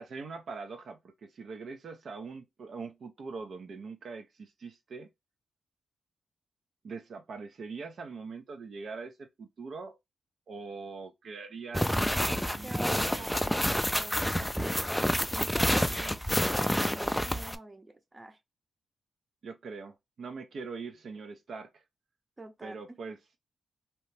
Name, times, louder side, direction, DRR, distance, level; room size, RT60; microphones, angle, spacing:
voice 1, 0.0-5.1 6.8-10.0 10.5-13.5 19.4-21.8 22.6-23.2, right 4 dB, 65° right, 0.5 m, -42 dB
sound 1, 11.7-17.6, equal, 5° left, 0.3 m, -28 dB
voice 2, 12.6-14.5 15.1-18.4 22.4-23.0, right 2 dB, 25° right, 0.7 m, -46 dB
2.8 x 2.1 x 3.1 m
cardioid pair, 75°, 0 cm